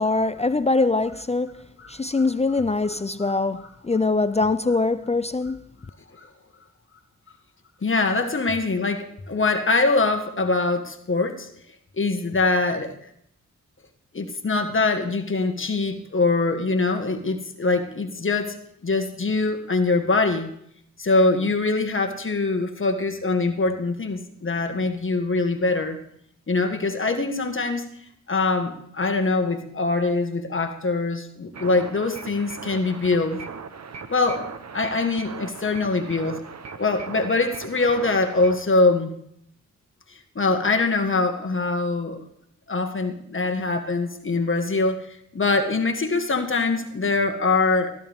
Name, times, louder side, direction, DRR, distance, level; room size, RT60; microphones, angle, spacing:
voice 1, 0.0-1.6 1.9-5.6, left 3 dB, 20° left, 0.5 m, -23 dB
voice 2, 1.8-2.2 6.1-6.3 7.8-11.5 12.0-12.9 14.1-18.6 18.8-20.5 21.0-26.0 26.5-27.9 28.3-33.4 34.1-34.5 34.7-36.4 36.7-39.1 40.1-42.2 42.7-45.1 45.3-47.9, left 3 dB, 40° left, 1.7 m, -23 dB
sound 1, 31.5-38.6, right 5 dB, 55° right, 1.1 m, -39 dB
15.5 x 13.5 x 3.6 m
cardioid pair, 60°, 31 cm